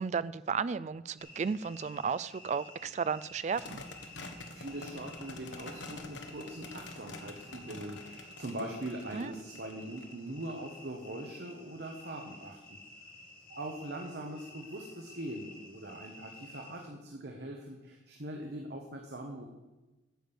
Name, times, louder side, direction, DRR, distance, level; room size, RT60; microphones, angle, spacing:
voice 1, 0.0-3.8 9.1-9.3, right 5 dB, 40° right, 17 dB, 0.3 m, -34 dB
sound 1, 1.2-16.9, left 2 dB, 50° left, 2.5 m, -52 dB
sound 2, 3.5-10.5, left 2 dB, 75° left, 1.3 m, -47 dB
voice 2, 4.1-12.8 13.5-19.5, right 1 dB, 60° right, 1 dB, 1.2 m, -42 dB
10.5 x 7.5 x 6.9 m, 1.1 s
head